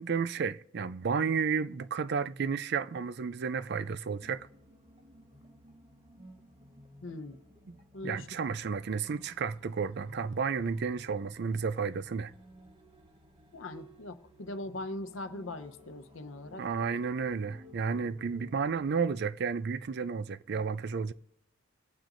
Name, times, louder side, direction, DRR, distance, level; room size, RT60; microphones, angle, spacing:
voice 1, 0.0-4.5 7.7-7.8 8.0-12.3 16.6-21.1, right 5 dB, 55° right, 0.4 m, -32 dB
sound 1, 4.2-18.9, equal, 25° right, 1.0 m, -56 dB
voice 2, 7.0-7.4 7.9-8.3 13.5-16.6, left 2 dB, 70° left, 0.8 m, -40 dB
25.5 x 9.0 x 2.6 m
head